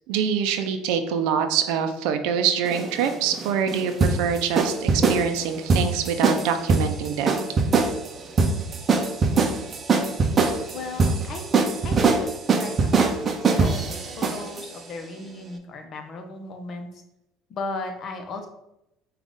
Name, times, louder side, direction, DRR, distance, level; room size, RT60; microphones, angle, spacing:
voice 1, 0.1-7.4, right 7 dB, 80° right, 8 dB, 0.5 m, -25 dB
sound 1, 2.6-14.7, right 4 dB, 35° right, 0.6 m, -22 dB
voice 2, 10.7-11.4 11.8-12.3 12.6-16.9 17.5-18.5, left 3 dB, 50° left, 4 dB, 0.8 m, -36 dB
4.9 x 2.4 x 3.9 m, 0.86 s
supercardioid pair, 90°, 0 cm